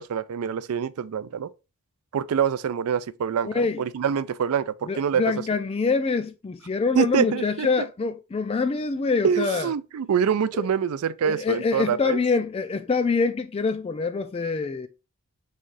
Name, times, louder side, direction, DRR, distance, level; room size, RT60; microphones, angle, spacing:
voice 1, 0.0-1.5 2.1-5.3 6.9-7.7 9.2-12.2, right 7 dB, 85° right, 0.4 m, -25 dB
voice 2, 3.4-3.8 4.9-9.7 10.6-10.7 11.2-14.9, left 4 dB, 25° left, 0.3 m, -25 dB
3.6 x 3.3 x 3.9 m
head